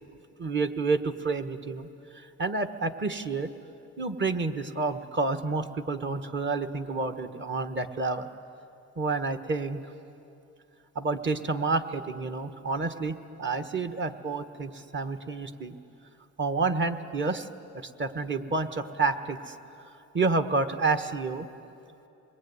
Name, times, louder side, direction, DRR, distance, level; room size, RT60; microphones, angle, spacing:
voice 1, 0.4-1.9 2.4-3.5 4.0-8.3 9.0-9.8 10.9-15.7 16.4-17.5 18.0-19.4 20.1-21.5, right 3 dB, 40° right, 8 dB, 1.5 m, -29 dB
26.0 x 21.5 x 9.7 m, 2.8 s
cardioid pair, 90°, 30 cm